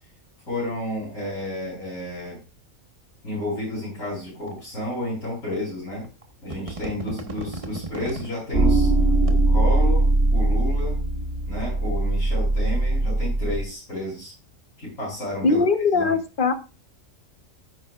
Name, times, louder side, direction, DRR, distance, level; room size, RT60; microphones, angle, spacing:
voice 1, 0.5-2.4 3.2-6.1 6.4-8.9 9.2-10.0 10.3-11.0 11.5-14.3 14.8-15.6 15.9-16.1, left 1 dB, 80° left, -9 dB, 7.2 m, -31 dB
sound 1, 4.5-4.6 5.5-5.6 6.0-6.2 6.5-8.3 9.0-9.3, right 2 dB, 25° right, 1.4 m, -35 dB
sound 2, 8.5-13.6, right 2 dB, 50° right, 2.8 m, -21 dB
voice 2, 15.4-16.5, left 4 dB, 40° left, 8 dB, 1.2 m, -20 dB
13.0 x 9.9 x 2.5 m, 0.31 s
omnidirectional pair, 1.4 m